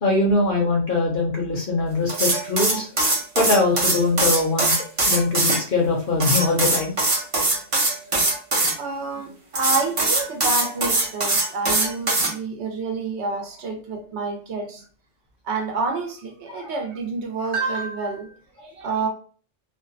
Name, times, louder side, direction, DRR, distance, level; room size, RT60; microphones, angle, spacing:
voice 1, 0.0-2.9 3.4-4.7 5.1-6.9 8.2-8.4 16.5-16.7, left 3 dB, 55° left, 0.7 m, -22 dB
sound 1, 2.1-5.6 6.2-8.7 9.5-12.3, right 2 dB, 35° right, 0.6 m, -21 dB
voice 2, 8.8-14.8 15.4-19.1, right 4 dB, 70° right, 0.9 m, -28 dB
2.6 x 2.0 x 2.5 m
omnidirectional pair, 1.2 m